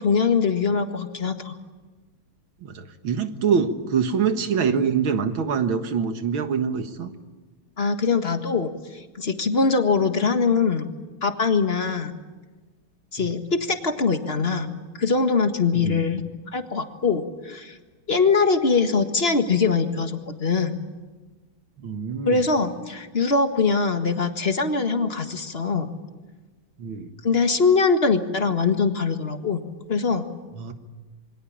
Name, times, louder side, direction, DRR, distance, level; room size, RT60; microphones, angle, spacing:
voice 1, 0.0-1.6 7.8-10.9 11.2-12.1 13.1-14.7 15.0-16.2 16.5-17.8 18.1-20.7 22.2-25.9 27.2-29.6 29.9-30.3, left 4 dB, 30° left, 7 dB, 1.8 m, -22 dB
voice 2, 2.6-7.1 15.7-16.0 21.8-22.4 26.8-27.1 30.6-30.7, right 6 dB, 80° right, 8 dB, 2.4 m, -25 dB
27.5 x 23.5 x 8.8 m, 1.3 s
omnidirectional pair, 2.2 m